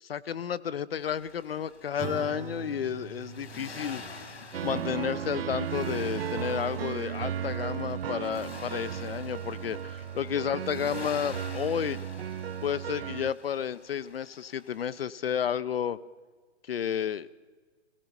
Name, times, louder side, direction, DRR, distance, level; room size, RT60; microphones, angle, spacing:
voice 1, 0.0-4.0 4.6-12.0 12.6-16.0 16.7-17.3, left 8 dB, 60° left, 14 dB, 0.5 m, -31 dB
Accelerating revving vroom, 1.0-15.0, left 4 dB, 75° left, 2.1 m, -48 dB
Acoustic guitar / Strum, 2.0-6.8, right 6 dB, 10° right, 0.8 m, -44 dB
sound 1, 4.5-13.3, right 9 dB, 60° right, 0.5 m, -35 dB
17.5 x 17.0 x 4.3 m, 1.4 s
figure-of-eight pair, 130°, 34 cm